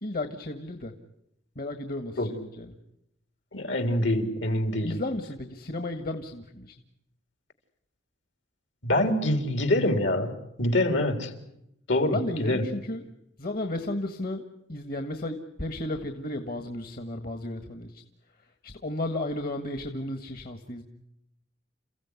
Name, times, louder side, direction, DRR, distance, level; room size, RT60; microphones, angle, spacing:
voice 1, 0.0-0.9 1.5-2.7 4.8-6.8 12.1-13.0 13.4-14.4 14.7-18.0 18.6-20.8, left 1 dB, 50° left, 8 dB, 1.6 m, -33 dB
voice 2, 3.5-5.0 8.8-10.3 10.6-11.3 11.9-12.6, left 1 dB, 75° left, 7 dB, 3.4 m, -25 dB
29.0 x 15.5 x 9.7 m, 0.81 s
head